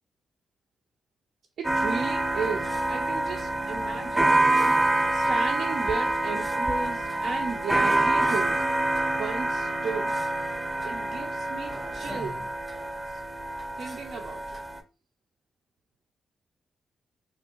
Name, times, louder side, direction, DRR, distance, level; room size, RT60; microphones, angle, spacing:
sound 1, 1.6-14.8, right 2 dB, 20° right, 0.6 m, -26 dB
voice 1, 1.6-4.8 5.1-8.6 9.1-10.2 10.8-12.5 13.8-14.6, right 5 dB, 75° right, 2 dB, 0.4 m, -35 dB
3.4 x 2.6 x 2.8 m, 0.32 s
cardioid pair, 75°, 0 cm